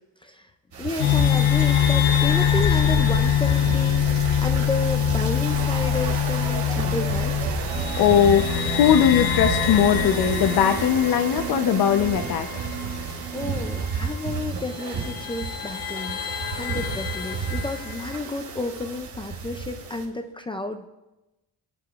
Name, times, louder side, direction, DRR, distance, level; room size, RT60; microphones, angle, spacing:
sound 1, 0.7-20.0, right 5 dB, 45° right, 2.9 m, -33 dB
voice 1, 0.8-7.4 12.9-13.1 13.3-20.9, left 2 dB, 15° left, 6 dB, 0.3 m, -32 dB
sound 2, 1.0-12.9 13.2-13.3 14.3-14.4 15.0-18.0, left 8 dB, 90° left, 1.2 m, -24 dB
Guitar, 5.5-14.1 14.4-14.8, right 9 dB, 80° right, 1.1 m, -35 dB
voice 2, 8.0-12.6, left 9 dB, 65° left, 6 dB, 0.8 m, -20 dB
23.5 x 11.0 x 2.4 m, 1.0 s
cardioid pair, 175°, 38 cm